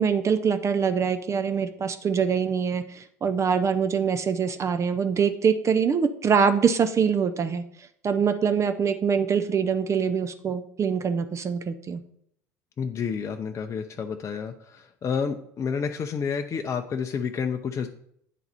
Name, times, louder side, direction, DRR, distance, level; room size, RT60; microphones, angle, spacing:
voice 1, 0.0-12.0, right 6 dB, 35° right, 9 dB, 0.6 m, -24 dB
voice 2, 12.8-17.9, left 6 dB, 35° left, 5 dB, 0.6 m, -30 dB
9.1 x 4.0 x 4.3 m, 0.69 s
hypercardioid pair, 65°, 9 cm